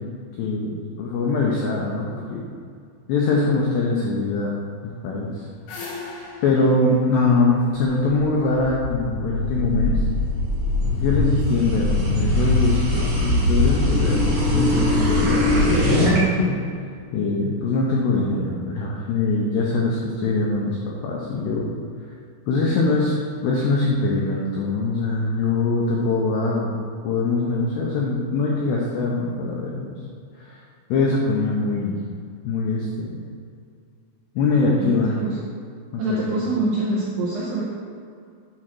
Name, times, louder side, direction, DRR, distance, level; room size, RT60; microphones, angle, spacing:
voice 1, 0.4-2.5 3.1-4.5 4.8-5.4 6.4-10.0 10.9-16.6 17.1-20.8 21.0-21.7 22.5-23.2 23.4-30.0 30.5-30.6 30.9-32.0 32.5-33.2 34.4-35.1 35.9-36.4, left 3 dB, 85° left, -3 dB, 2.4 m, -23 dB
sound 1, 5.2-8.3, left 3 dB, 65° left, 3.2 m, -39 dB
sound 2, 8.6-16.2, left 2 dB, 50° right, 3.0 m, -21 dB
voice 2, 34.8-35.4 36.0-37.6, right 2 dB, 85° right, -6 dB, 2.4 m, -25 dB
8.8 x 4.3 x 6.0 m, 2.3 s
omnidirectional pair, 6.0 m